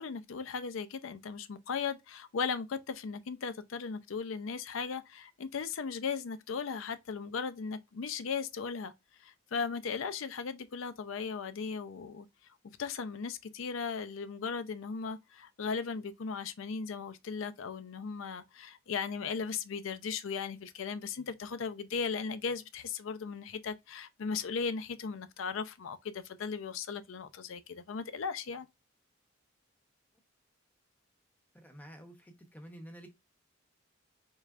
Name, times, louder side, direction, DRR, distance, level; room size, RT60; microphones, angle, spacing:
voice 1, 0.0-8.9 9.2-12.3 12.8-28.7, left 5 dB, 75° left, 0.5 m, -37 dB
voice 2, 31.5-33.1, equal, 10° left, 0.8 m, -50 dB
4.6 x 3.2 x 2.4 m
head